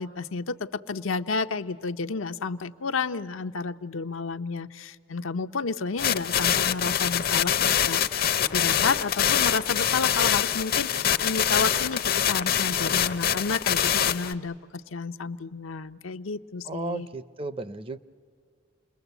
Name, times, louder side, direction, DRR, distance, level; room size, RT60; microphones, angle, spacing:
voice 1, 0.0-12.0 12.3-17.1, left 4 dB, 85° left, 9 dB, 0.7 m, -31 dB
sound 1, 6.0-14.3, left 9 dB, 45° left, 0.6 m, -24 dB
voice 2, 16.7-18.0, right 3 dB, 25° right, 14 dB, 0.6 m, -34 dB
28.5 x 21.0 x 8.2 m, 2.1 s
head